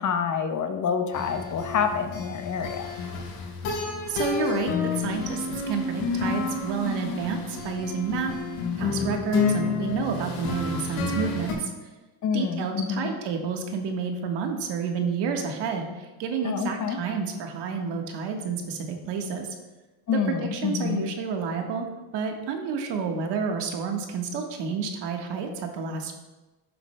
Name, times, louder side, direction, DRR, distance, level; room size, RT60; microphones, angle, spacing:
voice 1, 0.0-2.9 12.2-13.1 16.4-17.0 20.1-21.0, left 6 dB, 40° left, 6 dB, 0.8 m, -27 dB
sound 1, 1.1-11.5, left 4 dB, 80° left, 2.8 m, -30 dB
voice 2, 4.1-8.4 8.8-11.7 12.3-19.5 20.1-21.9 22.1-26.1, right 5 dB, 65° right, 3 dB, 1.5 m, -30 dB
12.0 x 7.6 x 2.2 m, 1.1 s
supercardioid pair, 100°, 44 cm